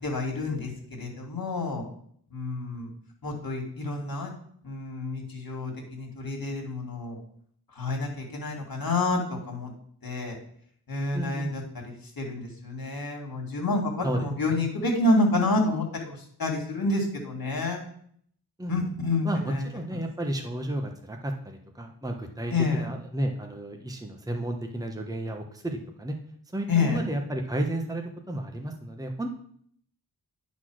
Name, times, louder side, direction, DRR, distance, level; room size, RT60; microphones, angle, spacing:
voice 1, 0.0-1.9 2.3-2.9 3.2-4.4 4.6-7.2 7.8-9.7 10.0-10.4 10.9-17.8 18.7-19.6 22.5-22.8 26.7-27.0, left 2 dB, 60° left, 1 dB, 2.3 m, -28 dB
voice 2, 11.1-11.5 14.0-14.7 18.6-18.8 19.2-26.1 26.5-29.3, right 1 dB, 10° right, 3 dB, 1.1 m, -32 dB
9.7 x 4.2 x 6.3 m, 0.63 s
wide cardioid pair, 70°, 41 cm